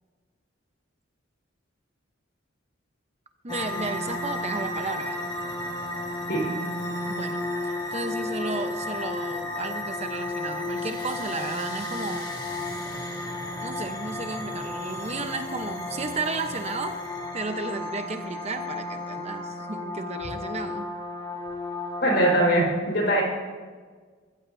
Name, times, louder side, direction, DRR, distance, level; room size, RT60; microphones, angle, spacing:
voice 1, 3.4-5.3 7.1-7.4 7.9-12.4 13.6-17.0 17.3-20.9, right 3 dB, 35° right, 6 dB, 0.9 m, -33 dB
sound 1, 3.5-22.4, left 2 dB, 20° left, 1.8 m, -33 dB
voice 2, 22.0-23.2, right 1 dB, 55° left, -1 dB, 4.9 m, -21 dB
23.5 x 15.0 x 2.7 m, 1.5 s
head